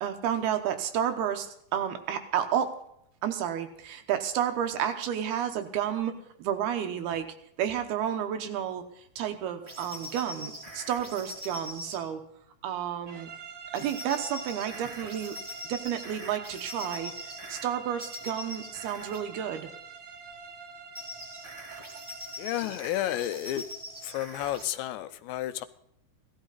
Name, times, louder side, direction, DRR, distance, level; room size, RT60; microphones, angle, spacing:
voice 1, 0.0-2.8 3.2-7.3 7.6-8.9 9.2-12.2 12.6-13.3 13.7-15.4 15.7-17.1 17.5-19.7, right 9 dB, 70° right, 6 dB, 2.8 m, -31 dB
sound 1, 9.6-12.0 13.7-17.6 18.0-19.2 20.9-24.7, equal, 25° right, 0.6 m, -42 dB
sound 2, 13.1-22.5, right 5 dB, 40° right, 2.0 m, -46 dB
voice 2, 22.4-23.7 24.0-25.7, left 13 dB, 85° left, 13 dB, 3.0 m, -31 dB
17.0 x 13.5 x 4.0 m, 0.74 s
omnidirectional pair, 5.0 m